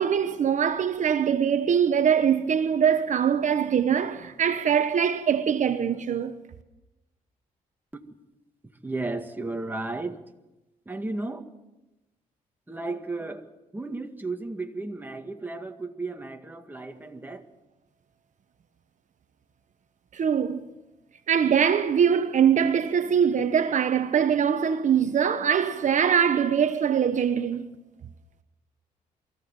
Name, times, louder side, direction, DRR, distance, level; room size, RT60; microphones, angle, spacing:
voice 1, 0.0-6.3 20.1-20.7 21.3-27.7, right 8 dB, 55° right, 1.1 m, -23 dB
voice 2, 8.8-10.2 10.9-11.4 12.7-13.4 13.7-17.4, right 2 dB, 10° right, 2.0 m, -34 dB
23.5 x 15.5 x 7.5 m
cardioid pair, 75°, 15 cm